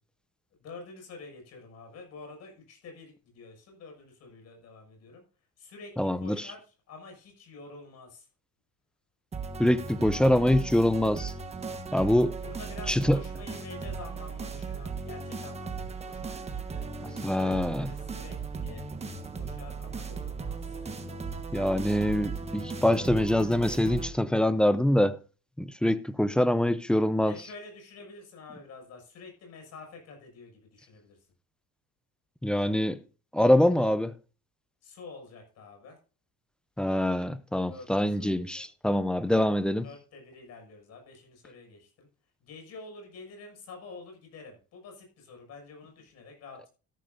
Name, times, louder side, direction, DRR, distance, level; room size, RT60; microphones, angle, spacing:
voice 1, 0.6-5.2 5.6-8.3 12.4-16.9 17.5-18.9 19.3-20.8 27.2-31.2 34.8-36.0 37.7-38.9 39.8-42.1 42.4-46.7, left 3 dB, 55° left, 6.6 m, -48 dB
voice 2, 6.0-6.5 9.6-11.3 11.9-12.4 12.9-13.2 17.2-17.9 21.5-25.2 25.6-27.3 32.4-33.0 33.3-34.1 36.8-39.9, left 1 dB, 5° left, 0.5 m, -24 dB
sound 1, 9.3-24.1, right 5 dB, 20° right, 1.4 m, -37 dB
13.0 x 12.0 x 2.6 m
cardioid pair, 145°, 31 cm